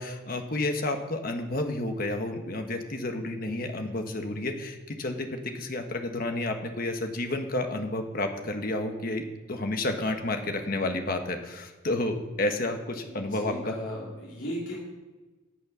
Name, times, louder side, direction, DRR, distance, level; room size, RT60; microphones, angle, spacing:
voice 1, 0.0-13.7, left 2 dB, 45° left, 5 dB, 1.3 m, -31 dB
voice 2, 13.1-14.8, equal, 65° left, -8 dB, 3.5 m, -36 dB
17.0 x 6.4 x 6.2 m, 1.2 s
head